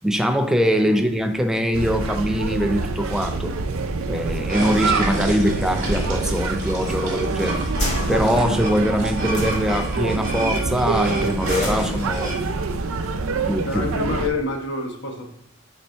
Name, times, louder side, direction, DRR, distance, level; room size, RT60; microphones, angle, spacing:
voice 1, 0.0-3.5 4.1-7.7 8.1-12.4 13.5-13.8, equal, 5° right, 6 dB, 0.4 m, -22 dB
sound 1, 1.4-14.4, left 1 dB, 35° left, 2.5 m, -33 dB
sound 2, 1.7-14.3, right 3 dB, 75° right, 0.5 m, -26 dB
sound 3, 4.5-12.4, right 2 dB, 35° right, 1.5 m, -32 dB
voice 2, 13.6-15.3, left 3 dB, 55° left, 2 dB, 1.1 m, -27 dB
5.4 x 4.3 x 4.5 m, 0.77 s
head